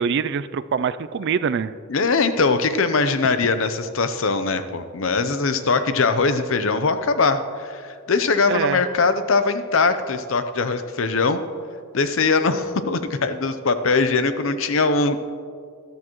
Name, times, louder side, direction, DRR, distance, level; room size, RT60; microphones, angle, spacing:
voice 1, 0.0-1.8 8.5-8.8, right 6 dB, 55° right, 15 dB, 0.3 m, -24 dB
voice 2, 1.9-11.4 11.9-15.2, left 4 dB, 65° left, 10 dB, 0.7 m, -21 dB
13.5 x 12.0 x 3.1 m, 2.2 s
head